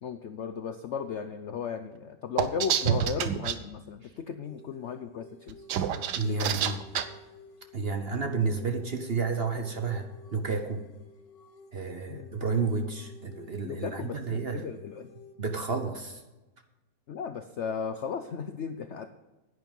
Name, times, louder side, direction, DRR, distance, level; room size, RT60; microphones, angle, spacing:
voice 1, 0.0-5.6 6.2-6.5 12.1-12.3 13.6-15.1 17.1-19.1, left 6 dB, 65° left, 9 dB, 0.7 m, -36 dB
sound 1, 2.4-3.6 5.5-7.0, right 9 dB, 70° right, 1.3 m, -27 dB
sound 2, 4.4-15.3, left 3 dB, 85° left, 1.9 m, -53 dB
voice 2, 6.1-6.8 7.7-10.8 11.7-14.7 15.4-16.2, right 4 dB, 45° right, 6 dB, 1.0 m, -31 dB
10.5 x 9.6 x 5.3 m, 1.1 s
omnidirectional pair, 1.9 m